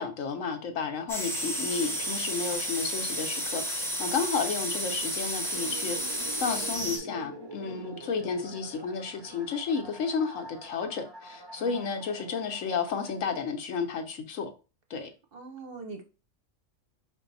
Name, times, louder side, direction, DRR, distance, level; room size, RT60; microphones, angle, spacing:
voice 1, 0.0-14.5 14.9-15.1, left 5 dB, 75° left, 1.2 m, -32 dB
sound 1, 1.1-7.0, equal, ahead, 0.8 m, -32 dB
sound 2, 5.5-13.2, right 3 dB, 30° right, 0.5 m, -45 dB
voice 2, 7.6-8.1 11.5-12.1 15.3-16.0, right 4 dB, 50° right, 0.8 m, -44 dB
5.1 x 2.7 x 3.9 m
omnidirectional pair, 1.4 m